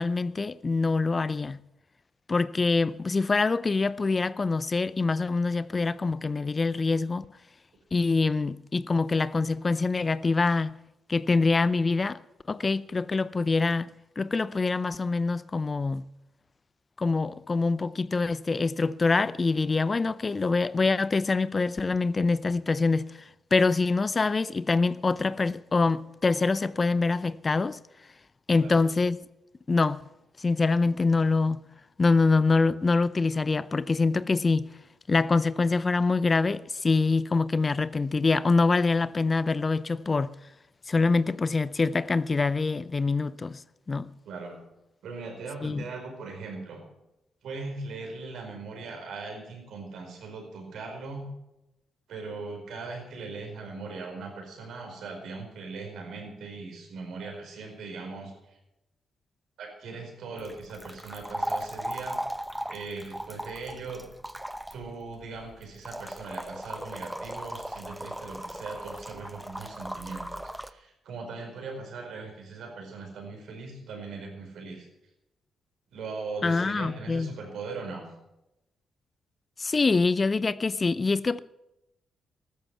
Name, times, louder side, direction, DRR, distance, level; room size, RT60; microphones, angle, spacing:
voice 1, 0.0-1.6 2.3-7.3 7.9-10.7 11.1-12.2 12.5-16.1 17.0-27.8 28.5-29.2 29.7-30.0 30.4-31.6 32.0-34.7 35.1-40.3 40.9-43.6 43.9-44.1 45.6-45.8 76.4-77.3 79.6-81.4, left 3 dB, 35° left, 0.5 m, -25 dB
voice 2, 44.2-44.6 45.0-46.8 47.4-51.2 52.1-58.6 59.6-62.2 62.7-64.0 64.7-74.9 75.9-78.1, right 4 dB, 70° right, 4.7 m, -39 dB
sound 1, 60.4-70.7, equal, 5° right, 0.9 m, -37 dB
14.5 x 13.0 x 5.8 m
hypercardioid pair, 45°, 0 cm